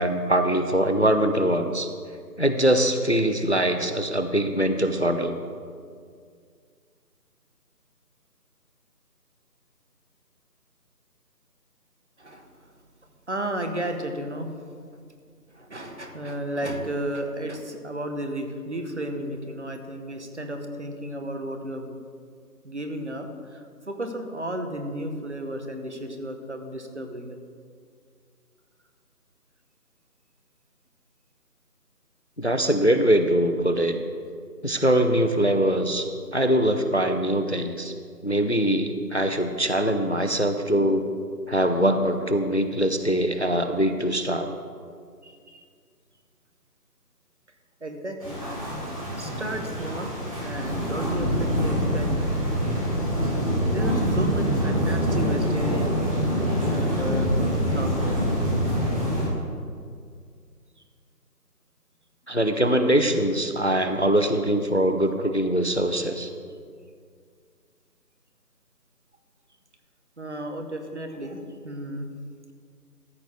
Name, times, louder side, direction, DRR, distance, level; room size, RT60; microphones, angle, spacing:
voice 1, 0.0-1.9 2.4-5.4 32.4-34.0 34.6-36.1 36.3-37.9 38.2-41.1 41.5-44.5 62.3-66.3, right 1 dB, 45° left, 8 dB, 0.5 m, -22 dB
voice 2, 12.2-12.7 13.3-14.5 15.5-22.0 22.6-27.4 45.2-45.6 47.8-48.4 49.2-50.1 50.4-52.4 53.7-58.3 70.2-72.1, right 1 dB, 45° right, 5 dB, 1.0 m, -33 dB
sound 1, 48.2-59.3, equal, 20° right, 2.1 m, -25 dB
13.5 x 4.6 x 6.7 m, 2.1 s
figure-of-eight pair, 170°, 48 cm